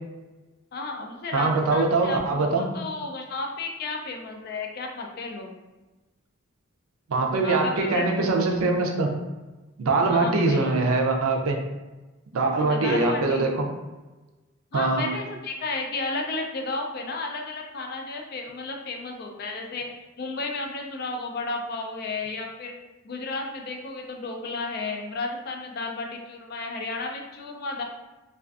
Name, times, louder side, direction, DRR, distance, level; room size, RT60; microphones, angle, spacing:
voice 1, 0.7-5.5 7.4-8.1 10.0-10.7 12.6-13.5 14.7-19.9 20.2-22.7 23.0-27.8, left 3 dB, 45° left, 2 dB, 0.3 m, -33 dB
voice 2, 1.3-2.6 7.1-9.1 9.8-11.6 12.3-13.6 14.7-15.0, right 3 dB, 80° right, 2 dB, 0.4 m, -23 dB
2.4 x 2.3 x 2.3 m, 1.1 s
head